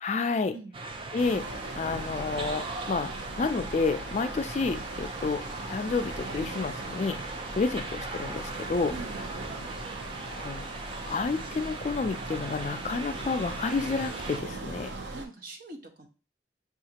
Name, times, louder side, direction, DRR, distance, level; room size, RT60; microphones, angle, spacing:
voice 1, 0.0-0.5 1.1-1.4 1.8-3.1 3.4-5.4 5.7-7.2 7.5-8.9 10.3-10.7 11.1-14.9, left 4 dB, 40° left, 8 dB, 0.3 m, -30 dB
sound 1, 0.7-14.4, right 2 dB, 30° right, 0.4 m, -39 dB
sound 2, 1.2-15.3, right 2 dB, 80° right, 0.7 m, -40 dB
voice 2, 8.9-9.4 15.1-16.1, right 3 dB, 50° right, 3 dB, 0.8 m, -42 dB
6.3 x 2.4 x 2.8 m, 0.35 s
head